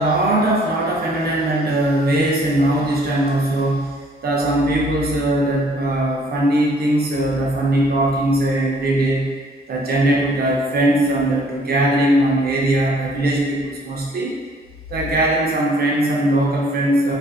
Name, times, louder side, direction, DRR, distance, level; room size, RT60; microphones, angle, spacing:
voice 1, 0.0-9.3 9.7-14.3 14.9-17.1, right 1 dB, 65° right, -3 dB, 0.5 m, -19 dB
2.5 x 2.4 x 2.3 m, 1.5 s
wide cardioid pair, 135°, 17 cm